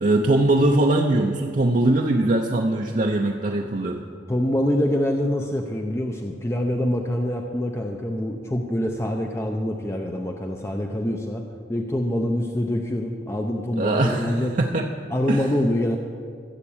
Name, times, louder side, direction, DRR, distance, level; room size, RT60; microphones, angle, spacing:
voice 1, 0.0-4.0 13.8-14.9 15.3-15.5, right 2 dB, 45° right, 1 dB, 0.7 m, -21 dB
voice 2, 4.3-11.4 11.7-14.5 15.1-16.0, left 1 dB, 15° left, 2 dB, 0.6 m, -25 dB
15.0 x 7.3 x 7.1 m, 2.3 s
head